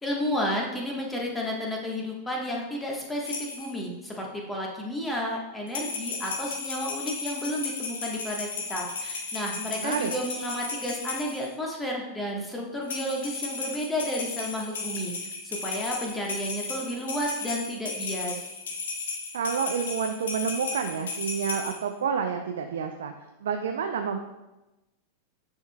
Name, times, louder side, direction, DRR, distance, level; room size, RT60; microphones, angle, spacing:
voice 1, 0.0-15.1 15.4-18.4, equal, 10° left, -1 dB, 1.2 m, -32 dB
sound 1, 3.2-3.8 5.7-11.5 12.8-21.8, left 4 dB, 65° left, 0.9 m, -35 dB
voice 2, 9.8-10.1 19.3-23.1 23.4-24.2, right 6 dB, 60° right, 5 dB, 0.4 m, -29 dB
9.5 x 4.5 x 2.2 m, 1.0 s
figure-of-eight pair, 90°, 0 cm